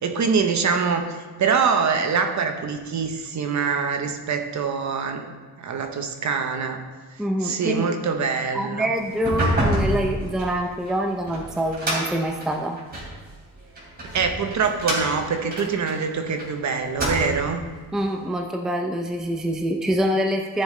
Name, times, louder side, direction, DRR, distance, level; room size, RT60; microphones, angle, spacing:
voice 1, 0.0-5.3 5.6-6.8 7.4-8.9 14.1-17.6, right 5 dB, 45° right, 6 dB, 1.0 m, -24 dB
voice 2, 7.2-8.0 8.5-12.8 17.9-20.6, equal, ahead, 3 dB, 0.5 m, -25 dB
sound 1, 9.1-13.2 13.8-16.5 16.8-17.6, right 1 dB, 25° right, 3.0 m, -27 dB
14.0 x 7.0 x 3.2 m, 1.4 s
cardioid pair, 155°, 38 cm